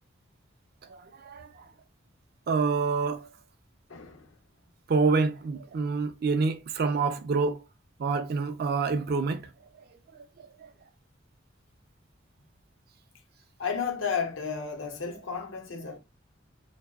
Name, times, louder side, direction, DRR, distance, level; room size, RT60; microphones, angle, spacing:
voice 1, 0.9-1.5 2.5-3.3 4.9-7.6 8.0-9.5, right 4 dB, 55° right, 0.4 m, -27 dB
voice 2, 3.9-4.3 13.6-16.0, left 6 dB, 85° left, 0.6 m, -32 dB
2.7 x 2.0 x 2.3 m
head